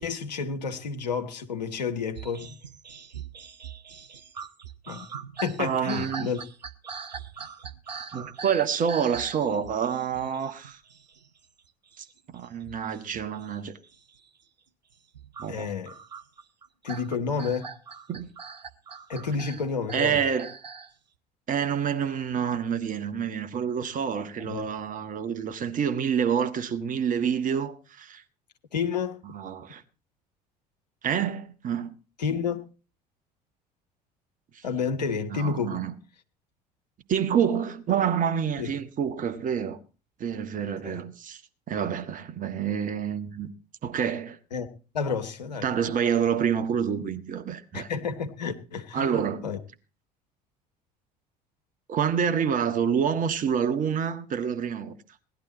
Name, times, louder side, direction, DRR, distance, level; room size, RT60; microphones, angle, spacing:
voice 1, 0.0-2.6 4.9-5.1 5.4-6.4 15.5-15.9 16.8-17.8 19.1-20.2 24.4-24.7 28.7-29.2 32.2-32.6 34.6-35.8 38.6-38.7 40.8-41.0 44.5-44.7 44.9-45.7 47.7-49.6, left 5 dB, 80° left, 1.2 m, -30 dB
sound 1, 2.1-11.6 11.9-13.6 13.8-14.3 14.9-20.9, right 6 dB, 85° right, 0.7 m, -42 dB
voice 2, 5.6-6.3 8.1-10.8 12.0-12.1 12.3-13.8 15.4-15.7 18.1-18.3 19.9-20.5 21.5-28.2 29.2-29.8 31.0-31.9 34.5-34.6 35.3-35.9 37.1-39.8 40.2-41.4 41.7-43.5 43.8-44.4 45.6-47.9 48.9-49.5 51.9-54.9, right 7 dB, 40° right, 1.5 m, -27 dB
17.0 x 11.5 x 4.1 m
figure-of-eight pair, 60°, 21 cm